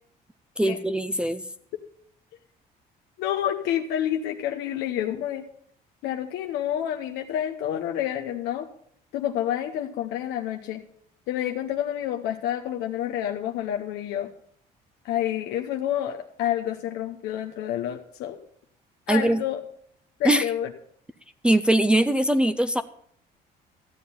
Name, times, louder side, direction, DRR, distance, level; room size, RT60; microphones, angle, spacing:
voice 1, 0.6-1.4 19.1-19.4 20.2-20.5 21.4-22.8, right 1 dB, 5° right, 8 dB, 0.5 m, -21 dB
voice 2, 3.2-5.4 6.0-8.7 9.1-10.8 11.3-14.3 15.0-18.4 19.1-19.6 20.2-20.7, left 11 dB, 90° left, 4 dB, 0.9 m, -28 dB
13.5 x 7.6 x 5.6 m, 0.64 s
cardioid pair, 110°, 17 cm